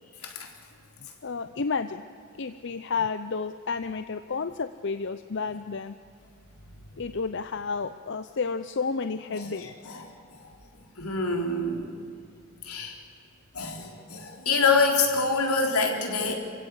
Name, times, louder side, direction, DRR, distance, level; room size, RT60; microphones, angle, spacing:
voice 1, 1.2-2.0 2.4-6.0 6.9-10.0, left 4 dB, 55° left, 11 dB, 0.6 m, -31 dB
voice 2, 11.0-11.9 12.6-12.9 13.5-16.3, left 4 dB, 80° left, 2 dB, 3.9 m, -26 dB
29.0 x 16.0 x 8.4 m, 2.4 s
head